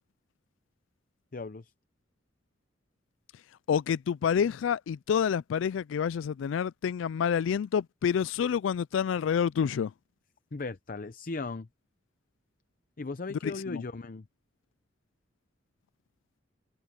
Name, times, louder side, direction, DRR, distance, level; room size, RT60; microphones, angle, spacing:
voice 1, 1.3-1.7 10.5-11.7 13.0-14.3, left 3 dB, 45° left, 0.6 m, -37 dB
voice 2, 3.7-9.9 13.4-13.8, left 7 dB, 85° left, 0.3 m, -28 dB
head